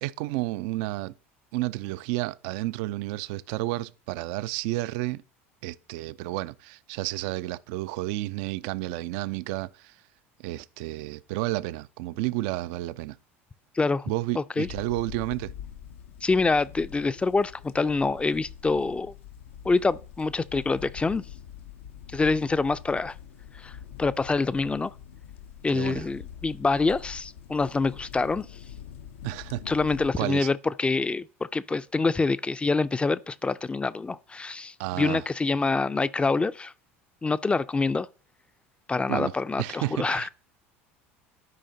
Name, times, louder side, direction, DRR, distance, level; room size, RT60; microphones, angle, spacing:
voice 1, 0.0-1.1 1.5-5.2 5.6-10.0 10.4-13.2 14.1-15.5 25.7-26.1 29.2-29.6 30.2-30.5 34.8-35.2 39.1-40.3, right 18 dB, 65° right, 0.3 m, -31 dB
voice 2, 13.8-14.1 14.4-14.7 16.2-19.1 19.6-21.2 22.1-23.1 23.6-23.7 24.0-24.9 25.6-28.5 29.7-31.3 31.5-36.7 37.2-38.1 38.9-40.3, left 3 dB, 15° left, 0.4 m, -26 dB
sound 1, 14.6-30.1, left 9 dB, 75° left, 0.6 m, -44 dB
12.5 x 4.9 x 2.7 m
hypercardioid pair, 75°, 7 cm